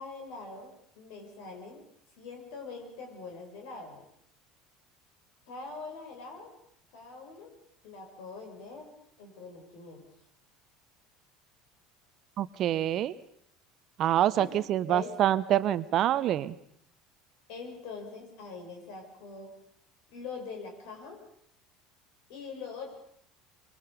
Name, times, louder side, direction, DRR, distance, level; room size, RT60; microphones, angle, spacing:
voice 1, 0.0-1.8 2.2-4.0 5.5-6.6 6.9-7.6 7.8-10.0 14.3-14.6 14.9-15.1 17.5-19.6 20.1-21.2 22.3-22.9, left 4 dB, 60° left, 3 dB, 6.8 m, -43 dB
voice 2, 12.4-13.2 14.0-16.6, right 12 dB, 50° right, 16 dB, 1.0 m, -26 dB
25.5 x 23.5 x 5.2 m, 0.70 s
figure-of-eight pair, 65°, 0 cm